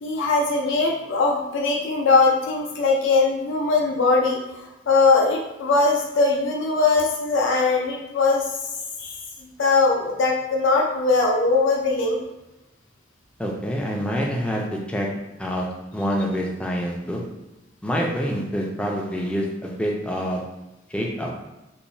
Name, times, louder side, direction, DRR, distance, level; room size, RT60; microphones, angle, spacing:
voice 1, 0.0-4.4 4.9-8.4 9.0-9.2 9.6-12.2, left 3 dB, 70° left, -1 dB, 0.4 m, -20 dB
voice 2, 13.4-15.1 15.4-15.7 15.9-17.2 17.8-20.4 20.9-21.3, equal, 5° left, -2 dB, 0.3 m, -26 dB
2.9 x 2.1 x 2.6 m, 0.98 s
head